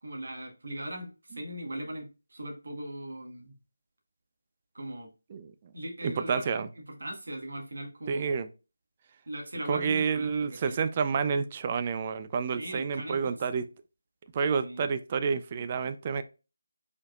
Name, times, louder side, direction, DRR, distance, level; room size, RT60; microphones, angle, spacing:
voice 1, 0.0-3.5 4.7-5.1 5.7-6.4 7.0-8.3 9.3-10.8 12.6-13.2 14.6-14.9, right 1 dB, 65° right, 1.6 m, -39 dB
voice 2, 5.3-5.7 6.0-6.7 8.1-8.5 9.7-13.7 14.3-16.2, right 5 dB, 30° right, 0.4 m, -29 dB
4.8 x 4.5 x 2.4 m
figure-of-eight pair, 160°, 0 cm